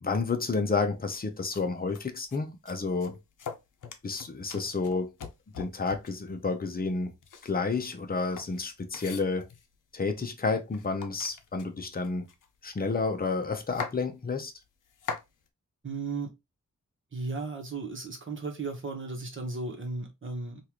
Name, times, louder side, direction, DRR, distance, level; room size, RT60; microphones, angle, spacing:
voice 1, 0.0-3.2 4.0-5.1 5.6-7.1 7.4-9.5 9.9-12.3 12.6-14.5, left 4 dB, 30° left, 0.6 m, -30 dB
sound 1, 1.1-1.2 1.5-1.6 1.9-2.4 2.7-6.3 7.2-9.8 10.4-10.5 10.7-12.8 13.1-13.2 13.4-14.0 14.6-15.3, left 6 dB, 80° left, 0.6 m, -41 dB
voice 2, 15.8-16.3 17.1-20.6, right 3 dB, 40° right, 1.1 m, -35 dB
3.6 x 2.5 x 2.9 m
wide cardioid pair, 135°, 31 cm